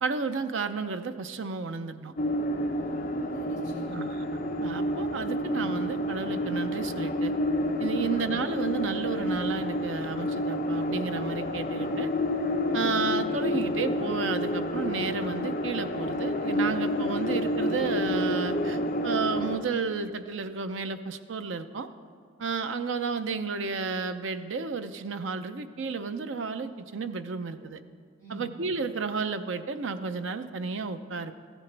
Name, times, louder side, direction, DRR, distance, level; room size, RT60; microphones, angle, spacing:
voice 1, 0.0-2.1 3.9-4.2 4.6-7.3 7.8-12.1 12.7-21.9 22.4-27.8 28.3-31.3, right 4 dB, 80° right, 10 dB, 0.6 m, -32 dB
sound 1, 2.2-19.6, left 1 dB, 45° left, 0.8 m, -29 dB
voice 2, 2.7-4.4 28.2-28.5, left 1 dB, 45° right, -5 dB, 3.3 m, -48 dB
14.5 x 13.0 x 3.3 m, 2.2 s
head